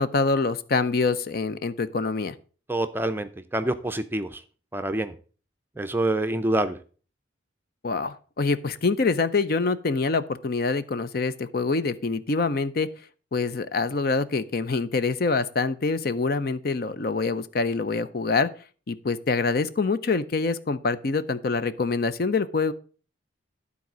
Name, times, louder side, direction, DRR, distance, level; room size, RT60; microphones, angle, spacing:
voice 1, 0.0-2.3 7.8-12.9 13.3-18.5 18.9-22.7, left 4 dB, 50° left, 12 dB, 0.5 m, -25 dB
voice 2, 2.7-4.4 4.7-5.1 5.8-6.8, right 1 dB, 10° right, 9 dB, 0.5 m, -26 dB
12.0 x 4.1 x 6.0 m, 0.39 s
head